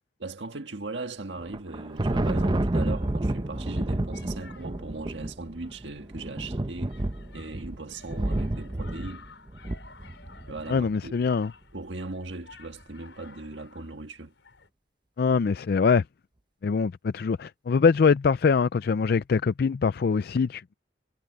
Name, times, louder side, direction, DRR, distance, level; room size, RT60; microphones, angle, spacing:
voice 1, 0.2-9.2 10.5-11.3 11.7-14.3, right 3 dB, 85° right, 1.6 m, -39 dB
Thunder, 1.4-10.8, right 1 dB, 25° right, 0.7 m, -30 dB
sound 1, 1.7-14.7, left 4 dB, 85° left, 5.7 m, -54 dB
voice 2, 10.7-11.5 15.2-16.0 16.6-20.7, left 5 dB, 55° left, 0.4 m, -23 dB
head